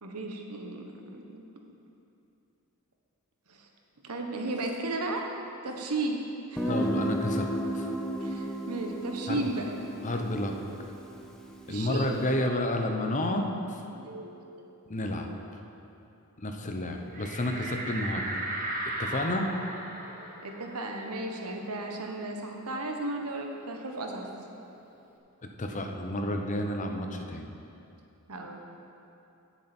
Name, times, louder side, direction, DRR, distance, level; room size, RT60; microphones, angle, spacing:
voice 1, 0.0-1.4 3.5-3.7 4.0-5.3 5.6-6.2 6.5-6.8 8.2-9.7 11.7-12.1 13.9-14.3 20.4-24.3 28.3-28.6, right 2 dB, 85° right, 2 dB, 1.2 m, -34 dB
Guitar, 6.6-12.1, equal, 5° left, 0.7 m, -33 dB
voice 2, 6.7-7.9 9.3-9.5 10.0-10.9 11.7-13.8 14.9-15.6 16.4-18.4 18.9-19.5 25.4-27.6, left 1 dB, 35° left, 4 dB, 0.8 m, -31 dB
sound 1, 17.1-22.3 22.7-22.8 23.1-24.8, right 1 dB, 40° right, 1.2 m, -37 dB
16.0 x 7.2 x 4.4 m, 2.8 s
head